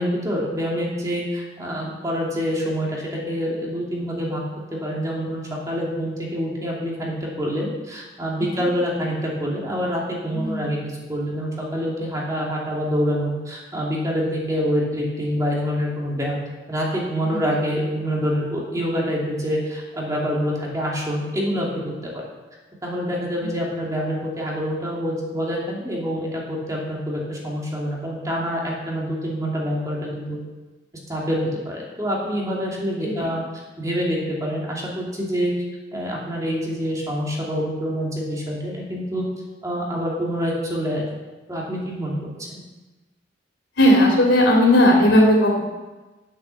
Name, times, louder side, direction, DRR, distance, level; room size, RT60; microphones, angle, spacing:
voice 1, 0.0-4.4 4.7-10.8 11.1-16.4 16.7-21.7 22.0-22.2 22.8-30.4 31.1-33.4 33.8-35.5 35.9-39.3 39.6-41.0 41.5-42.2 42.5-42.6, equal, 20° right, -4 dB, 2.7 m, -26 dB
voice 2, 10.3-10.7 17.3-17.4 33.0-33.3 43.8-45.6, left 1 dB, 90° left, -1 dB, 3.4 m, -16 dB
10.0 x 8.1 x 6.7 m, 1.2 s
head